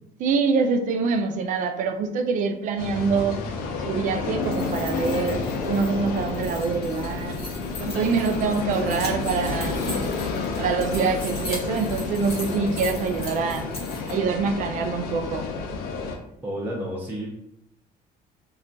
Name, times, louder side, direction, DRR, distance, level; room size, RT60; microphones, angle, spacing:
voice 1, 0.2-3.4 3.8-7.4 7.8-10.1 10.5-13.7 14.1-15.5, right 5 dB, 60° right, 7 dB, 0.4 m, -25 dB
sound 1, 2.8-16.2, left 4 dB, 75° left, 0.5 m, -30 dB
Piano, 4.3-12.8 13.2-14.2, left 3 dB, 60° left, 1.0 m, -40 dB
sound 2, 4.3-14.1, left 1 dB, 35° left, 1.0 m, -40 dB
voice 2, 16.4-17.3, equal, 10° right, -4 dB, 0.6 m, -31 dB
2.3 x 2.2 x 3.8 m, 0.78 s
cardioid pair, 125°, 15 cm